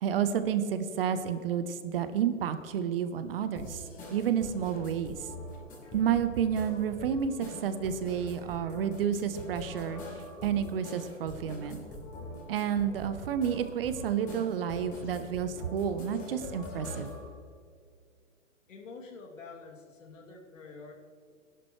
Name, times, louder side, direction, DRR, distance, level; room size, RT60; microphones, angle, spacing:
voice 1, 0.0-3.8 4.1-5.2 5.9-10.0 10.4-11.8 12.5-17.1, right 8 dB, 45° right, 11 dB, 0.9 m, -30 dB
sound 1, 3.6-17.3, left 1 dB, 20° left, 3.4 m, -43 dB
voice 2, 18.7-20.9, left 4 dB, 75° left, -1 dB, 2.9 m, -47 dB
16.5 x 11.0 x 3.2 m, 2.1 s
hypercardioid pair, 140°, 39 cm